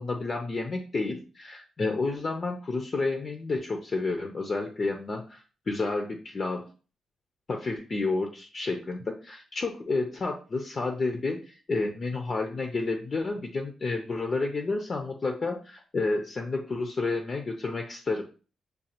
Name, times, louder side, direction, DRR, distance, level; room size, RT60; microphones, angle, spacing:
voice 1, 0.0-6.7 7.5-18.2, left 3 dB, 35° left, 3 dB, 0.5 m, -30 dB
6.4 x 2.3 x 2.8 m, 0.36 s
cardioid pair, 135°, 0 cm